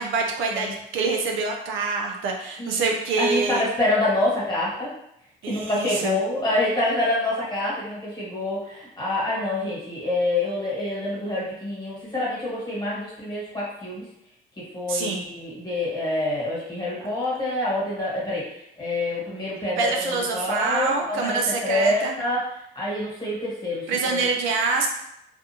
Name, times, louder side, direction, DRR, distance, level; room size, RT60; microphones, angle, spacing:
voice 1, 0.0-3.6 5.4-6.2 14.9-15.2 19.8-22.2 23.9-24.9, right 4 dB, 85° right, 2 dB, 0.5 m, -25 dB
voice 2, 3.2-4.9 5.4-14.1 14.6-22.5 22.7-24.3, left 2 dB, 20° left, -7 dB, 1.4 m, -26 dB
2.5 x 2.2 x 2.8 m, 0.78 s
cardioid pair, 90°, 20 cm